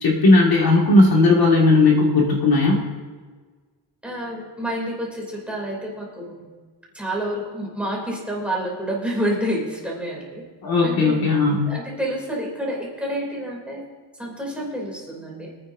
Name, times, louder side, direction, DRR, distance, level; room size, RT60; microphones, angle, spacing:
voice 1, 0.0-2.8 10.6-11.7, left 2 dB, 55° left, -2 dB, 2.2 m, -16 dB
voice 2, 4.0-6.5 6.9-10.4 10.8-11.2 11.7-13.8 14.2-15.5, equal, 5° right, -4 dB, 3.0 m, -28 dB
25.5 x 9.5 x 2.7 m, 1.4 s
cardioid pair, 160°, 44 cm